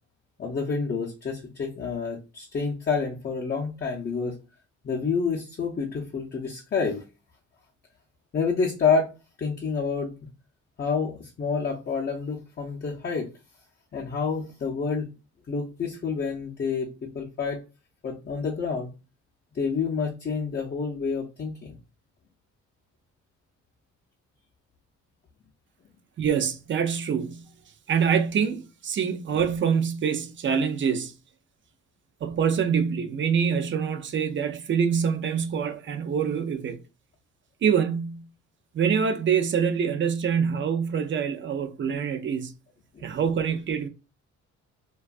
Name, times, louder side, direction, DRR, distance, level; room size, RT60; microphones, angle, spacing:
voice 1, 0.4-4.4 4.8-7.0 8.3-9.1 9.4-10.1 10.8-13.3 13.9-15.1 15.5-17.6 18.0-18.9 19.5-21.8 42.9-43.1, left 5 dB, 35° left, 0.5 m, -28 dB
voice 2, 26.2-27.5 27.9-31.1 32.2-36.8 37.6-38.3 38.7-42.5 43.0-43.9, right 7 dB, 40° right, 0.4 m, -25 dB
2.5 x 2.3 x 2.3 m
cardioid pair, 90°, 30 cm